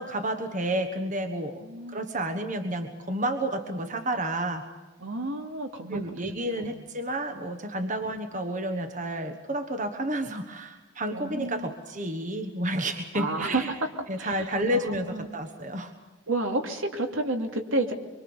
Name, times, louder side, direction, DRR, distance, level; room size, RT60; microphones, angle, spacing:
voice 1, 0.0-1.6 1.9-4.7 5.9-13.7 14.1-15.9, right 1 dB, 35° right, 6 dB, 1.4 m, -30 dB
voice 2, 1.6-2.0 5.0-6.1 6.5-6.8 8.0-8.1 11.1-11.7 13.1-13.6 14.2-14.8 15.1-15.3 16.3-17.9, right 2 dB, 75° right, 4 dB, 2.8 m, -30 dB
25.0 x 24.0 x 7.1 m, 1.2 s
head